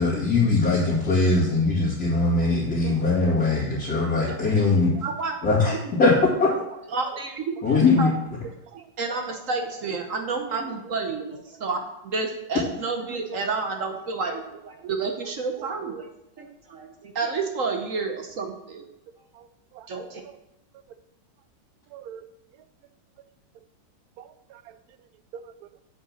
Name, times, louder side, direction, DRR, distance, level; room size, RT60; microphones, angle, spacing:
voice 1, 0.0-4.9 5.4-6.5 7.6-8.1, left 3 dB, 50° left, -9 dB, 2.8 m, -21 dB
voice 2, 5.0-5.4 5.7-5.8 6.9-8.1 8.7-16.1 16.4-18.9 19.9-20.2, right 4 dB, 50° right, 4 dB, 1.1 m, -30 dB
voice 3, 21.9-22.3 24.2-24.8 25.3-25.8, right 8 dB, 70° right, 12 dB, 0.9 m, -43 dB
7.9 x 5.3 x 7.4 m, 0.87 s
omnidirectional pair, 2.1 m